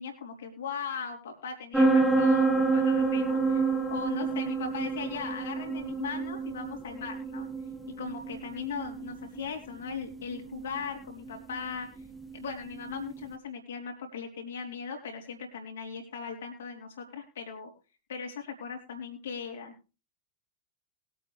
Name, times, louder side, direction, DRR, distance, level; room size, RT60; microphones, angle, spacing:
voice 1, 0.0-3.6 3.9-7.5 8.0-12.0 12.3-17.7 18.1-19.8, left 5 dB, 65° left, 3 dB, 3.5 m, -38 dB
sound 1, 1.7-13.2, right 3 dB, 5° right, 1.6 m, -29 dB
21.0 x 8.6 x 3.2 m, 0.32 s
figure-of-eight pair, 90°, 0 cm